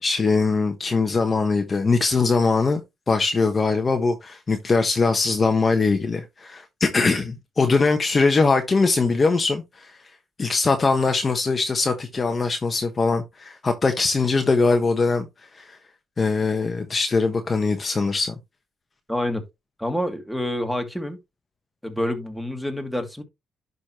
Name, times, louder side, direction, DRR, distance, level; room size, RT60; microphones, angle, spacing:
voice 1, 0.0-2.8 3.1-9.9 10.4-15.3 15.5-15.7 16.2-18.3, left 4 dB, 35° left, 1.2 m, -21 dB
voice 2, 19.1-19.4 19.8-21.2 21.8-23.2, left 1 dB, ahead, 2.1 m, -27 dB
11.5 x 4.1 x 3.0 m
cardioid pair, 90°, 0 cm